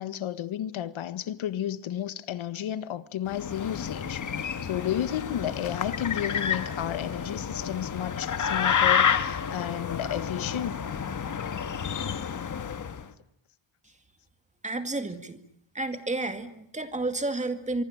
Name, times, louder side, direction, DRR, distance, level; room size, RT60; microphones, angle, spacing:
voice 1, 0.0-10.8, left 11 dB, 90° left, 1.7 m, -32 dB
sound 1, 3.3-13.0, left 7 dB, 40° left, 1.6 m, -29 dB
voice 2, 14.6-15.4 15.7-17.8, right 2 dB, 15° right, 2.2 m, -31 dB
25.0 x 24.5 x 8.8 m
wide cardioid pair, 180°, 46 cm